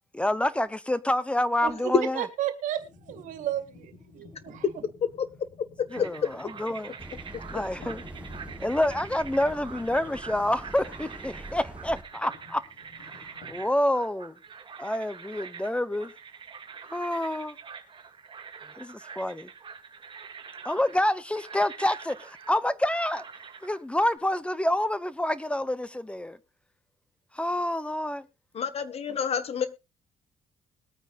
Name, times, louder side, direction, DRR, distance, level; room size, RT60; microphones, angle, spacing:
voice 1, 0.1-2.3 5.9-6.9 7.5-8.0 8.6-12.6 13.1-14.3 14.8-16.1 16.9-17.5 18.8-19.5 20.6-23.2 23.6-26.4 27.3-28.2, left 1 dB, 10° left, 0.7 m, -28 dB
voice 2, 1.6-4.6, right 11 dB, 85° right, 1.9 m, -33 dB
sound 1, 2.8-13.6, left 3 dB, 85° left, 6.6 m, -52 dB
sound 2, 5.9-24.2, right 6 dB, 40° right, 2.4 m, -45 dB
voice 3, 6.0-6.3 28.5-29.7, left 7 dB, 55° left, 1.4 m, -29 dB
sound 3, 7.0-12.0, right 1 dB, 10° right, 1.1 m, -44 dB
21.5 x 9.1 x 2.5 m
cardioid pair, 100°, 13 cm